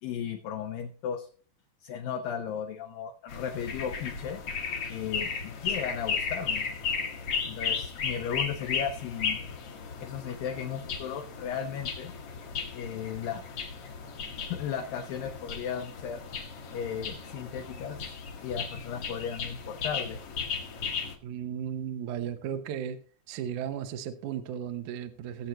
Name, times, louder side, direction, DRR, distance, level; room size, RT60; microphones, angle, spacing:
voice 1, 0.0-1.3 1.8-4.4 4.9-6.7 7.5-9.4 10.0-12.1 12.7-13.4 14.4-16.2 16.7-18.1 18.4-20.2, left 8 dB, 75° left, 5 dB, 2.2 m, -35 dB
sound 1, 3.3-21.1, left 5 dB, 55° left, 1.8 m, -35 dB
voice 2, 21.2-23.0 23.3-25.5, right 9 dB, 70° right, 8 dB, 1.9 m, -35 dB
18.5 x 7.8 x 3.0 m, 0.41 s
omnidirectional pair, 4.6 m